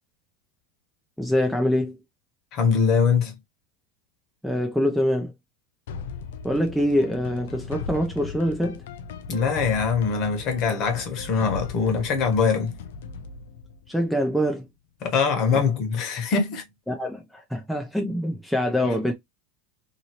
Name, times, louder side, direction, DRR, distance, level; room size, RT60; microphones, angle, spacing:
voice 1, 1.2-2.0 4.4-5.3 6.4-8.8 13.9-14.7 15.5-15.6 16.9-19.1, equal, ahead, 0.5 m, -24 dB
voice 2, 2.5-3.3 9.3-12.8 15.0-16.6, left 5 dB, 40° left, 1.1 m, -23 dB
sound 1, 5.9-14.7, left 5 dB, 90° left, 0.5 m, -38 dB
2.8 x 2.6 x 2.9 m
supercardioid pair, 145°, 0 cm